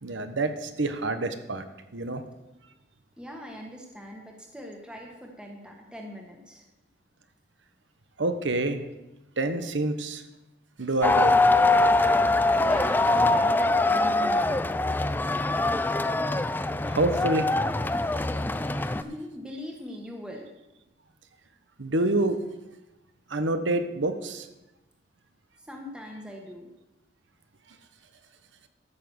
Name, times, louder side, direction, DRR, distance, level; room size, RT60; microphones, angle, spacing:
voice 1, 0.0-1.7 1.9-2.2 8.2-8.8 9.4-10.2 10.8-11.4 16.8-17.5 21.8-22.4 23.3-24.5, right 2 dB, 90° right, 9 dB, 1.1 m, -27 dB
voice 2, 3.2-6.6 12.6-14.7 19.0-20.5 25.6-26.7, equal, 5° right, 0 dB, 1.3 m, -40 dB
sound 1, 11.0-19.0, left 2 dB, 10° left, 0.4 m, -23 dB
13.0 x 6.0 x 7.1 m, 0.99 s
head